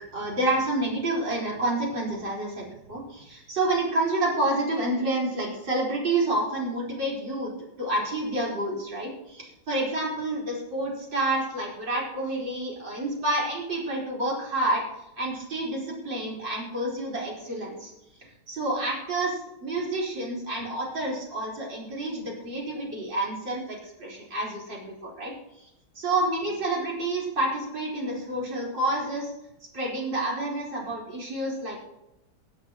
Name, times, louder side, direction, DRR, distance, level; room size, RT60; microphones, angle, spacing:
voice 1, 0.1-7.5 7.8-14.8 15.2-17.9 18.5-25.7 26.0-29.3 29.7-31.8, right 2 dB, 80° right, -5 dB, 5.3 m, -29 dB
23.5 x 8.6 x 3.0 m, 0.87 s
omnidirectional pair, 2.0 m